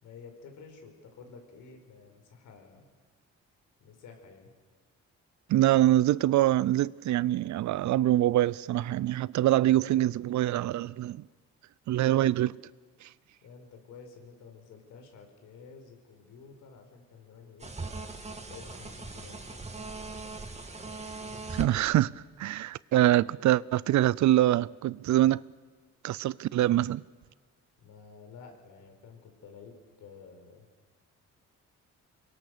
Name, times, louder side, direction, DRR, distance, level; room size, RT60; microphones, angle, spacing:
voice 1, 0.0-2.9 3.8-4.5 13.4-17.8 18.5-19.7 27.8-30.7, left 5 dB, 80° left, 5.3 m, -51 dB
voice 2, 5.5-11.2 11.9-12.6 13.0-13.1 21.5-25.4 26.0-27.0, right 14 dB, 70° right, 0.6 m, -24 dB
sound 1, 17.6-21.7, right 3 dB, 20° right, 2.6 m, -40 dB
25.0 x 23.0 x 6.8 m
cardioid pair, 90°, 30 cm